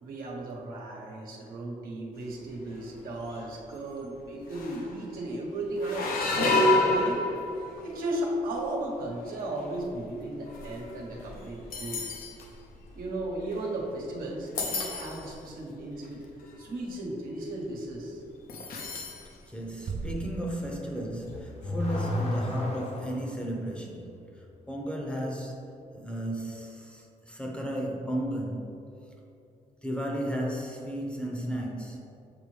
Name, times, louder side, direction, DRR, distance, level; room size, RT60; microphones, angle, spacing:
voice 1, 0.0-7.2 7.8-12.1 12.9-16.2 16.6-18.2, right 1 dB, 80° right, -2 dB, 1.1 m, -35 dB
sound 1, 2.5-2.9 3.2-3.5 4.2-4.3 4.5-5.0 5.8-7.9 8.6-8.8 9.6-14.0 14.3-15.3 16.0-16.1 16.4-16.7 18.5-19.3 19.6-19.7 21.0-21.1, left 2 dB, 85° left, 0.8 m, -30 dB
voice 2, 19.5-25.6 25.9-28.9 29.8-32.0, right 1 dB, 5° left, -1 dB, 0.7 m, -34 dB
sound 2, 19.9-21.4, right 4 dB, 40° right, 0.4 m, -38 dB
Car / Accelerating revving vroom, 21.1-23.3, left 1 dB, 50° left, 0.8 m, -32 dB
6.8 x 4.4 x 3.2 m, 2.7 s
cardioid pair, 125°, 15 cm